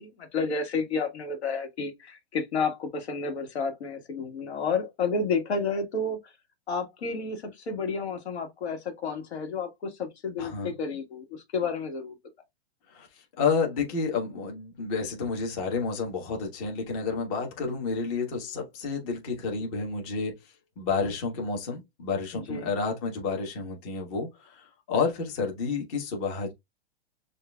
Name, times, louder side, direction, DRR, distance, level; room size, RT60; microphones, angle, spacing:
voice 1, 0.0-6.2 6.7-12.1 22.3-22.7, left 4 dB, 75° left, 1.6 m, -31 dB
voice 2, 10.4-10.7 12.9-20.3 20.8-26.5, left 5 dB, 35° left, 1.3 m, -30 dB
6.4 x 2.6 x 2.3 m
hypercardioid pair, 155°, 32 cm